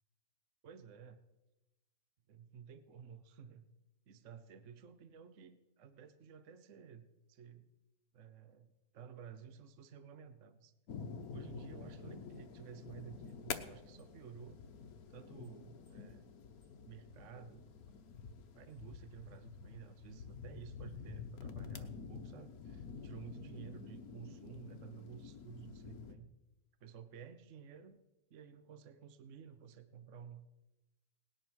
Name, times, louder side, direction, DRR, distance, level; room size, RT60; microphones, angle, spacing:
voice 1, 0.6-1.2 2.3-3.7 4.1-7.7 8.1-10.7 11.3-14.6 15.1-16.3 16.8-17.9 18.5-26.3 26.8-28.0 28.3-30.5, right 7 dB, 55° right, 11 dB, 1.1 m, -53 dB
sound 1, 10.9-26.1, left 6 dB, 65° left, 1.4 m, -49 dB
18.5 x 10.5 x 6.2 m, 0.98 s
omnidirectional pair, 1.8 m